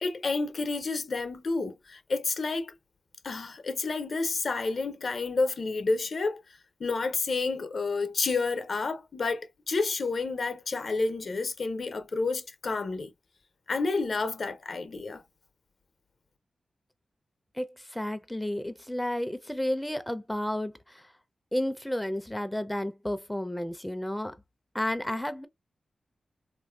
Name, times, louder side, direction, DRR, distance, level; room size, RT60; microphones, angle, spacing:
voice 1, 0.0-2.7 3.2-6.4 6.8-13.1 13.7-15.2, left 3 dB, 65° left, 0.6 m, -30 dB
voice 2, 17.5-21.1 21.5-24.4 24.7-25.5, left 1 dB, 10° left, 0.5 m, -32 dB
2.8 x 2.6 x 2.3 m
cardioid pair, 40°, 0 cm